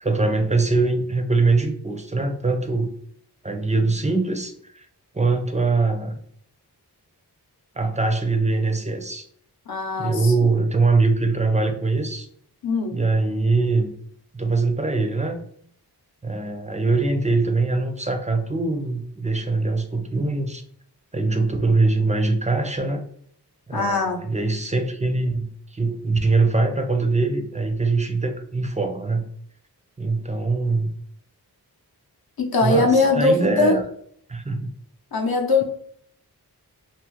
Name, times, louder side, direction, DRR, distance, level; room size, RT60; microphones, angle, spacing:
voice 1, 0.0-2.9 3.4-4.9 5.1-6.2 7.8-9.3 10.0-12.3 12.9-13.9 14.3-15.4 16.2-20.6 21.1-23.0 23.7-29.3 30.0-30.9 32.6-33.8 34.3-34.7, right 3 dB, 20° right, 5 dB, 0.4 m, -22 dB
voice 2, 9.7-10.1 12.6-12.9 23.7-24.2 32.4-33.7 35.1-35.6, left 3 dB, 60° left, 2 dB, 0.7 m, -20 dB
2.7 x 2.4 x 3.0 m, 0.62 s
wide cardioid pair, 65°, 40 cm